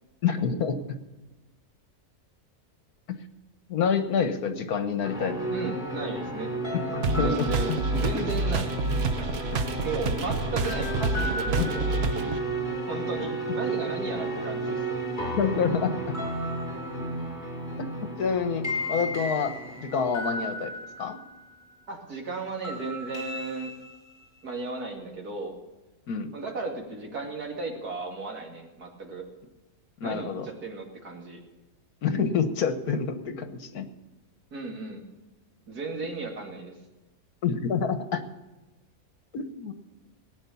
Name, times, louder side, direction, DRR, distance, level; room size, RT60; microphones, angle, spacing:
voice 1, 0.2-1.0 3.1-3.2 3.7-5.6 6.7-7.8 9.5-9.6 11.6-11.7 15.2-16.2 17.8-20.7 21.0-21.2 26.1-26.3 30.0-30.5 32.0-33.9 37.4-38.2 39.3-39.7, left 6 dB, 75° left, 9 dB, 1.6 m, -28 dB
sound 1, 5.0-21.6 22.6-24.3, right 1 dB, 30° left, 3.9 m, -33 dB
voice 2, 5.5-6.5 7.2-8.7 9.8-12.4 12.9-14.8 21.9-23.7 24.4-25.6 26.3-29.2 30.0-31.4 34.5-35.0 35.7-36.8, right 3 dB, 80° right, 1 dB, 2.9 m, -35 dB
sound 2, 7.0-12.4, right 3 dB, 50° right, 0.9 m, -28 dB
18.0 x 9.4 x 7.0 m, 1.1 s
omnidirectional pair, 1.6 m